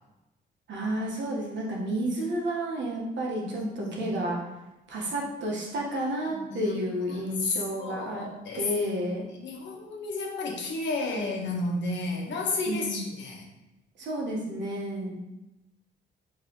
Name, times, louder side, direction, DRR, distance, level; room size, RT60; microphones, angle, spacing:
voice 1, 0.7-4.4 4.9-8.2 8.5-9.2 12.7-13.0 14.0-15.2, right 1 dB, 65° right, -3 dB, 1.3 m, -31 dB
voice 2, 3.4-4.2 6.3-7.2 7.8-8.7 9.4-13.5 14.6-14.8, left 2 dB, 70° left, 0 dB, 1.1 m, -33 dB
5.3 x 3.4 x 3.0 m, 0.99 s
cardioid pair, 90°, 20 cm